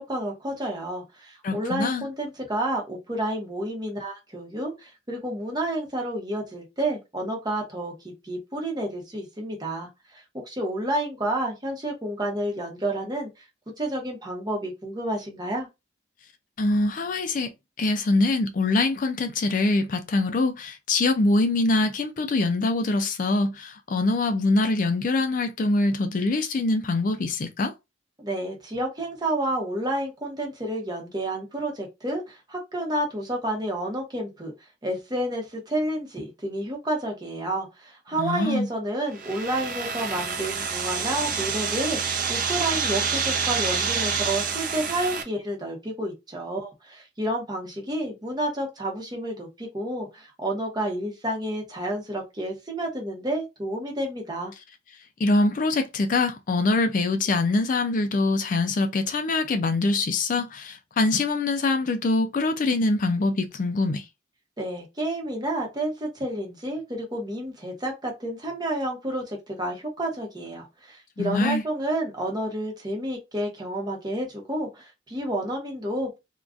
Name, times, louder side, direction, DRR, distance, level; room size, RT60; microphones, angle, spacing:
voice 1, 0.0-13.5 13.8-15.7 28.2-34.5 34.8-54.5 64.6-76.2, right 1 dB, 20° right, 0.9 m, -30 dB
voice 2, 1.4-2.0 16.6-17.5 17.8-27.7 38.2-38.7 55.2-64.0 71.2-71.6, left 2 dB, 45° left, 0.4 m, -24 dB
sound 1, 39.1-45.2, right 5 dB, 45° right, 0.6 m, -27 dB
3.6 x 2.3 x 2.4 m
head